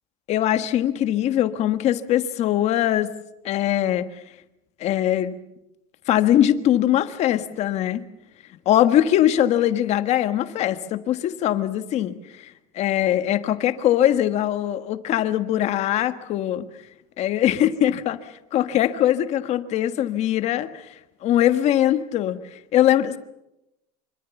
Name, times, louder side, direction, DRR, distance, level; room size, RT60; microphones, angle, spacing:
voice 1, 0.3-3.1 3.4-4.1 4.8-5.3 6.1-8.0 8.6-12.5 12.7-16.7 17.2-18.2 18.5-20.7 21.2-22.4 22.7-23.2, left 12 dB, 35° left, 11 dB, 1.5 m, -21 dB
26.0 x 24.5 x 7.1 m, 0.87 s
cardioid pair, 170°, 19 cm